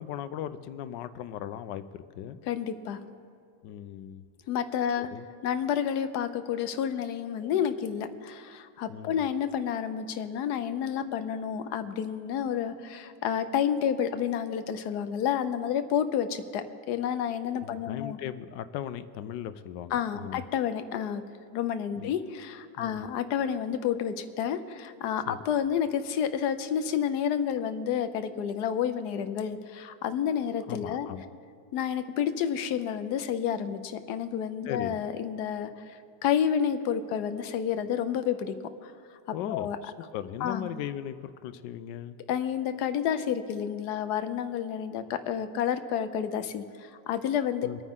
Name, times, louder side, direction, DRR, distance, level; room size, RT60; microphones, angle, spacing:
voice 1, 0.0-2.4 3.6-4.2 5.0-5.2 8.9-9.2 17.6-20.4 22.0-22.1 22.8-23.0 25.3-25.4 30.7-31.3 34.6-35.0 39.3-42.2 47.6-47.8, left 10 dB, 85° left, 12 dB, 1.3 m, -38 dB
voice 2, 2.5-3.0 4.5-5.1 5.4-18.2 19.9-21.2 21.5-31.1 31.7-38.5 38.8-38.9 39.5-39.8 40.4-40.7 42.3-47.8, left 8 dB, 70° left, 10 dB, 1.2 m, -30 dB
24.0 x 9.3 x 3.7 m, 2.5 s
omnidirectional pair, 1.9 m